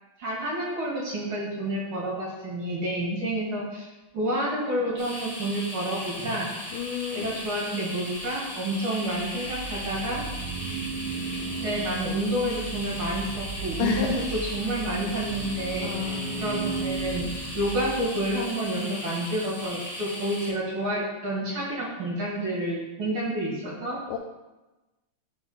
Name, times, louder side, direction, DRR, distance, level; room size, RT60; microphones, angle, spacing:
voice 1, 0.2-3.9 4.1-6.5 7.1-10.2 11.6-16.1 16.4-17.3 17.5-24.0, right 1 dB, 50° right, -5 dB, 2.0 m, -29 dB
sound 1, 5.0-20.5, equal, 40° left, 1.9 m, -37 dB
voice 2, 6.7-7.4 13.8-14.2 15.8-16.5 24.1-24.2, left 10 dB, 85° left, 2 dB, 2.0 m, -31 dB
sound 2, 9.1-18.4, right 4 dB, 80° right, 1.7 m, -36 dB
5.1 x 4.1 x 5.5 m, 1.1 s
omnidirectional pair, 3.5 m